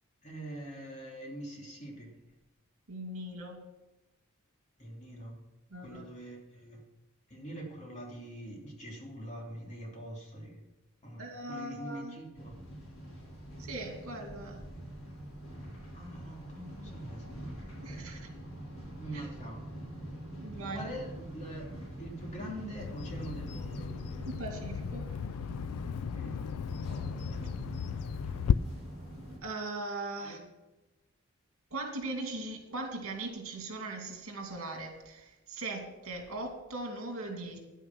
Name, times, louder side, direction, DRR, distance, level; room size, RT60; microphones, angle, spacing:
voice 1, 0.2-2.1 4.8-5.4 5.8-6.8 7.3-10.6 11.0-12.5 15.9-17.3 17.8-17.9 19.0-19.6 20.7-21.7 22.0-23.9 26.1-26.3 27.2-27.5 30.2-30.4, right 1 dB, 35° left, -2 dB, 3.0 m, -44 dB
voice 2, 2.9-3.6 5.7-6.0 11.2-12.2 13.6-14.6 17.8-18.3 19.1-19.2 20.4-20.9 24.2-25.1 29.4-30.4 31.7-37.6, right 2 dB, 70° right, 2 dB, 2.5 m, -39 dB
sound 1, 12.3-29.4, right 1 dB, 65° left, 4.8 m, -44 dB
Bird vocalization bird call bird song, 22.8-28.5, left 8 dB, 80° left, 0.3 m, -35 dB
10.5 x 9.2 x 6.1 m, 1.0 s
head